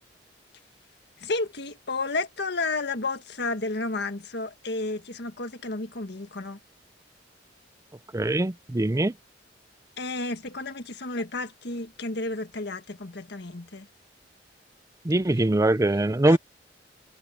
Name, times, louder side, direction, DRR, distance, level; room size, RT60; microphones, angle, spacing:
voice 1, 1.2-6.6 10.0-13.9 16.3-16.4, left 3 dB, 65° left, 1.7 m, -32 dB
voice 2, 8.1-9.1 15.0-16.4, right 1 dB, 20° right, 0.5 m, -22 dB
head